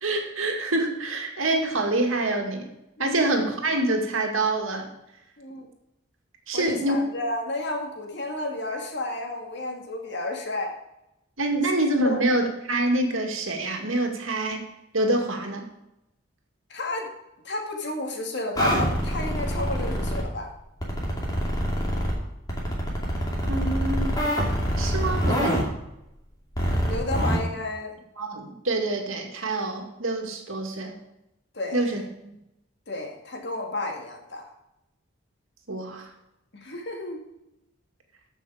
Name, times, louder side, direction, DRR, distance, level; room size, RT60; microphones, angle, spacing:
voice 1, 0.0-2.7 3.0-4.9 6.5-7.0 11.4-14.6 14.9-15.6 23.5-24.2 24.8-25.7 28.2-31.0 31.7-32.3 35.7-36.1, right 2 dB, 90° right, 3 dB, 2.1 m, -26 dB
voice 2, 3.0-3.3 5.4-5.7 6.5-10.7 12.0-12.2 16.7-17.1 17.4-20.5 26.8-27.9 31.5-32.0 32.9-34.5 36.5-37.2, left 2 dB, 55° left, 2 dB, 2.2 m, -31 dB
sound 1, 18.5-20.2 20.8-22.1 22.5-25.6 26.6-27.4, equal, 20° left, 2.5 m, -25 dB
14.0 x 6.1 x 5.0 m, 0.88 s
head